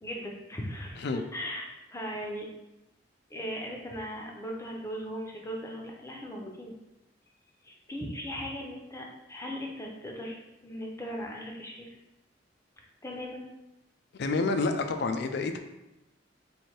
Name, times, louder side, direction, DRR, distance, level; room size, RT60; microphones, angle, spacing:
voice 1, 0.0-2.5 3.3-6.7 7.6-10.4 10.6-11.9 13.0-13.5, equal, 15° left, -1 dB, 0.6 m, -38 dB
voice 2, 14.1-15.6, left 3 dB, 60° left, 7 dB, 0.4 m, -29 dB
3.2 x 2.7 x 4.3 m, 0.96 s
head